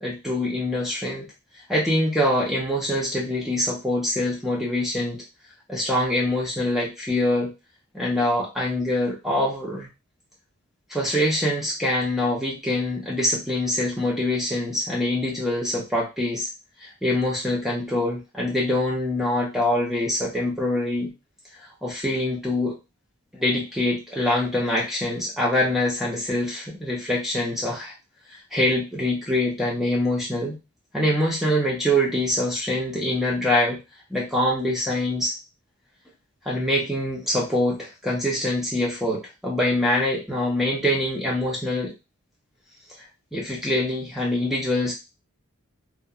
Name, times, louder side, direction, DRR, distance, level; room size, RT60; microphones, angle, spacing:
voice 1, 0.0-1.3 1.7-5.2 5.7-7.5 7.9-9.9 10.9-16.5 16.8-21.1 21.8-22.7 23.3-27.9 28.5-30.6 30.9-33.8 34.1-35.3 36.5-41.9 43.3-44.9, left 1 dB, ahead, -4 dB, 0.6 m, -24 dB
2.9 x 2.3 x 2.3 m, 0.25 s
head